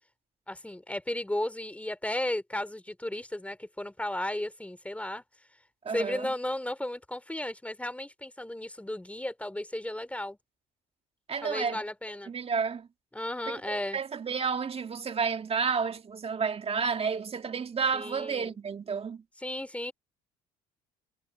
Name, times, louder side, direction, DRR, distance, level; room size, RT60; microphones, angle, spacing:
voice 1, 0.5-5.2 5.9-10.4 11.4-12.3 13.1-14.0 17.9-18.6 19.4-19.9, left 1 dB, 5° left, 3.0 m, -34 dB
voice 2, 5.8-6.3 11.3-11.8 12.3-12.9 13.5-19.2, right 6 dB, 35° right, 2.1 m, -31 dB
hypercardioid pair, 65°, 18 cm